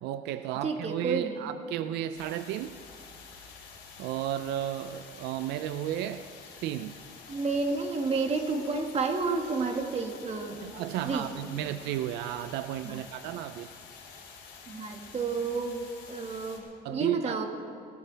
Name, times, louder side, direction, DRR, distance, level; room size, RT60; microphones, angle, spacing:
voice 1, 0.0-2.8 4.0-6.2 6.6-7.0 10.6-13.7 16.8-17.4, right 12 dB, 90° right, 12 dB, 0.5 m, -33 dB
voice 2, 0.6-1.5 7.3-10.6 11.0-11.4 12.8-13.0 14.7-17.5, right 4 dB, 40° right, 4 dB, 1.8 m, -31 dB
sound 1, 2.1-16.6, left 5 dB, 75° left, 3.8 m, -49 dB
23.0 x 14.5 x 3.4 m, 2.6 s
cardioid pair, 110°, 17 cm